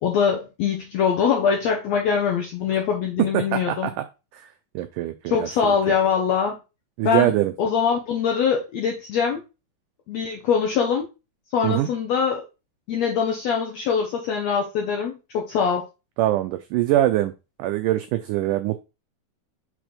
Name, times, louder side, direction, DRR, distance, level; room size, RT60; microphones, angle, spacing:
voice 1, 0.0-3.9 5.3-6.6 7.0-9.4 10.1-11.1 11.5-12.4 12.9-15.9, left 7 dB, 75° left, 1 dB, 1.6 m, -23 dB
voice 2, 3.3-3.9 4.7-5.8 7.0-7.5 11.6-11.9 16.2-17.3 17.6-18.8, right 14 dB, 85° right, 9 dB, 1.9 m, -23 dB
6.2 x 3.2 x 5.0 m, 0.28 s
omnidirectional pair, 4.2 m